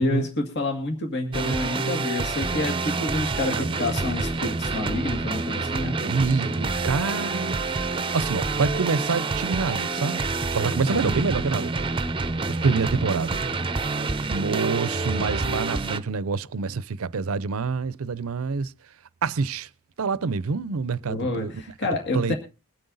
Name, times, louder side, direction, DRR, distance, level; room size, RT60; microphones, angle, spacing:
voice 1, 0.0-6.0 10.8-11.2 21.1-22.4, left 2 dB, 55° left, 2.0 m, -28 dB
sound 1, 1.3-16.0, right 3 dB, 25° right, 0.6 m, -27 dB
voice 2, 1.3-2.2 2.6-2.8 3.4-3.8 6.0-7.6 8.1-10.2 10.5-11.7 12.5-13.4 14.3-18.7 19.2-19.7 20.0-21.5 22.1-22.3, right 4 dB, 85° right, 0.6 m, -27 dB
22.0 x 7.9 x 3.9 m
head